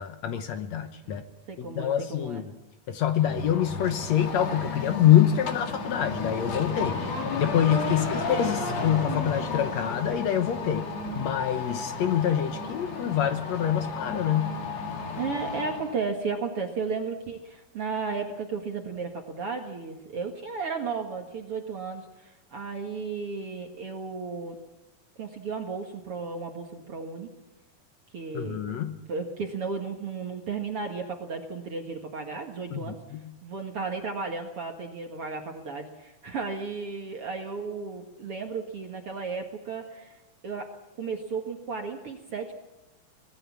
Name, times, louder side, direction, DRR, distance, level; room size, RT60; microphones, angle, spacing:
voice 1, 0.0-1.2 1.6-2.4 2.9-7.0 7.3-10.9 11.2-14.6 28.3-29.0 32.7-33.2, left 10 dB, 70° left, 8 dB, 1.7 m, -25 dB
voice 2, 1.0-2.4 7.9-8.1 15.2-24.6 25.2-27.3 28.1-28.8 29.1-33.0 33.4-42.5, right 4 dB, 50° right, 3 dB, 1.9 m, -34 dB
sound 1, 3.1-16.0, left 4 dB, 50° left, 3.2 m, -33 dB
24.5 x 20.0 x 7.3 m, 1.0 s
omnidirectional pair, 4.4 m